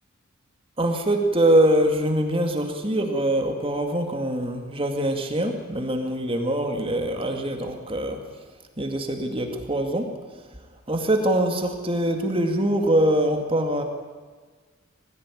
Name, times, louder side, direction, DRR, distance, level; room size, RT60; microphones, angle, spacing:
voice 1, 0.8-8.2 8.8-10.1 10.9-13.8, right 1 dB, 25° right, 4 dB, 2.1 m, -23 dB
22.0 x 15.0 x 9.8 m, 1.5 s
head